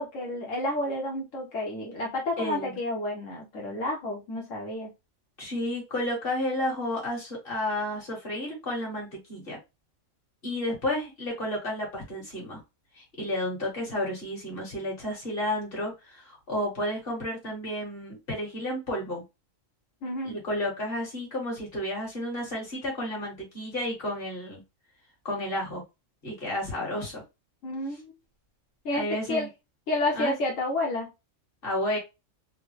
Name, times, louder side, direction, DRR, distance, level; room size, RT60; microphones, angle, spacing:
voice 1, 0.0-4.9 20.0-20.4 27.6-28.1 28.8-29.5 29.9-31.1, left 1 dB, 80° left, -2 dB, 1.2 m, -30 dB
voice 2, 2.4-2.8 5.4-9.6 10.4-12.6 13.0-19.2 20.2-24.6 25.3-25.8 26.2-27.2 28.9-29.5 30.1-30.4 31.6-32.0, left 1 dB, 50° left, -2 dB, 1.7 m, -31 dB
3.6 x 2.0 x 3.1 m, 0.25 s
omnidirectional pair, 1.3 m